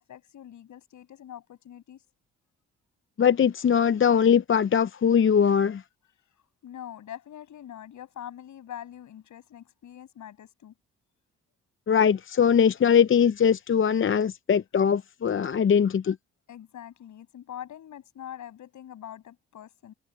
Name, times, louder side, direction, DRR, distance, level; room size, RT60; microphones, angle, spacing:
voice 1, 0.0-2.0 6.6-10.7 16.5-19.9, left 10 dB, 65° left, 7.1 m, -43 dB
voice 2, 3.2-5.8 11.9-16.2, left 7 dB, 40° left, 0.8 m, -21 dB
hypercardioid pair, 50°, 31 cm